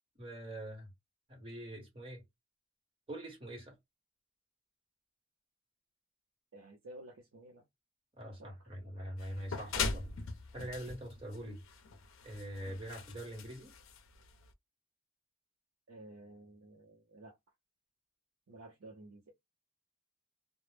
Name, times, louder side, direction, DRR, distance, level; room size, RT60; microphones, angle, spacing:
voice 1, 0.2-0.9 1.3-2.2 3.1-3.8 8.2-10.2 10.5-11.6 12.2-13.7, right 1 dB, 25° right, 1.0 m, -43 dB
voice 2, 6.5-7.6 8.4-8.7 15.9-17.4 18.5-19.3, right 1 dB, 80° right, 0.6 m, -53 dB
sound 1, 9.2-14.5, left 4 dB, 70° left, 0.5 m, -41 dB
2.0 x 2.0 x 3.1 m
head